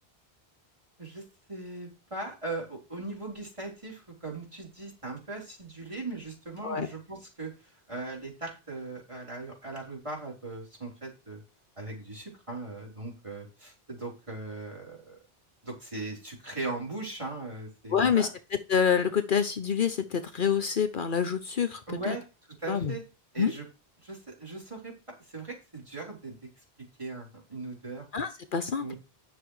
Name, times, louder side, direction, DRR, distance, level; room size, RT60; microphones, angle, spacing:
voice 1, 1.0-11.4 11.8-15.2 15.6-18.3 21.9-22.2 22.6-23.0 23.3-23.7 24.0-24.9 25.2-26.4 27.0-28.0 28.8-29.0, right 3 dB, 30° right, -1 dB, 3.9 m, -39 dB
voice 2, 17.9-18.3 18.7-21.8 22.1-22.2 22.7-22.9 23.4-23.5 28.1-28.9, left 7 dB, 60° left, 10 dB, 0.9 m, -26 dB
10.0 x 6.0 x 4.8 m, 0.30 s
omnidirectional pair, 1.0 m